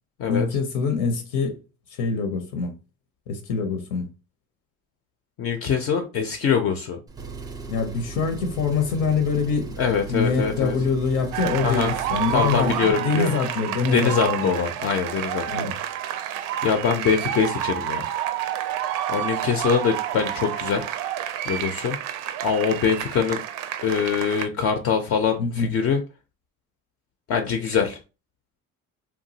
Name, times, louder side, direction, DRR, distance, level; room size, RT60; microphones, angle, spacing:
voice 1, 0.3-1.6 1.9-2.7 3.3-4.1 7.7-9.8 10.1-14.5 15.5-15.8 25.4-25.7, left 5 dB, 85° left, 0.7 m, -24 dB
voice 2, 5.4-7.0 9.8-10.8 11.6-12.0 12.3-13.3 13.9-15.7 16.1-18.1 19.1-20.9 21.5-22.0 22.4-23.4 23.8-26.0 27.3-28.0, left 6 dB, 50° left, 0.5 m, -23 dB
Engine, 7.1-12.9, right 5 dB, 15° right, 0.4 m, -38 dB
sound 1, 11.3-24.5, right 11 dB, 80° right, 0.5 m, -29 dB
2.9 x 2.3 x 2.7 m
cardioid pair, 110°, 31 cm